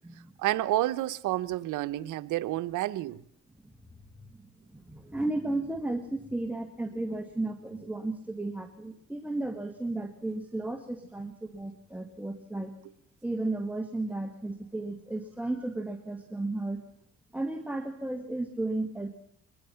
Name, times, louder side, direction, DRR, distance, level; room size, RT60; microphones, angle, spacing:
voice 1, 0.4-3.2, right 15 dB, 90° right, 0.8 m, -29 dB
voice 2, 4.7-12.7 13.2-16.8 17.3-19.2, right 2 dB, 5° right, 1.9 m, -34 dB
23.0 x 20.5 x 5.7 m
cardioid pair, 90°, 30 cm